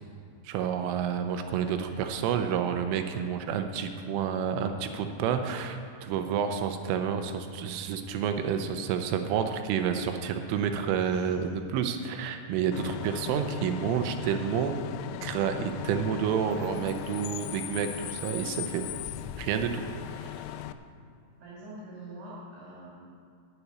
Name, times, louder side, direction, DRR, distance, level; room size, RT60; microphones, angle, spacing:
voice 1, 0.4-14.8 15.2-18.9 19.4-19.8 20.2-20.3, right 7 dB, 90° right, 7 dB, 3.2 m, -29 dB
voice 2, 1.5-2.1 6.0-6.4 11.0-11.3 21.4-22.9, right 1 dB, 55° right, -7 dB, 3.8 m, -46 dB
Bus / Idling / Screech, 12.7-20.7, left 12 dB, 85° left, 2.7 m, -38 dB
9.9 x 8.0 x 9.4 m, 2.5 s
omnidirectional pair, 5.8 m